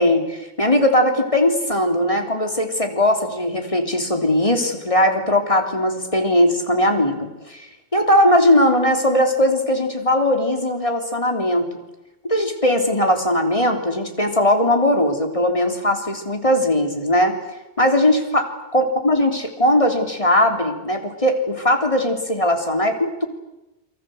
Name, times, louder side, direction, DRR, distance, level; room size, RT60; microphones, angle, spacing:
voice 1, 0.0-11.7 12.2-17.3 17.8-18.5 18.7-23.3, left 1 dB, 25° left, 4 dB, 3.6 m, -19 dB
28.5 x 24.0 x 8.0 m, 0.95 s
omnidirectional pair, 1.3 m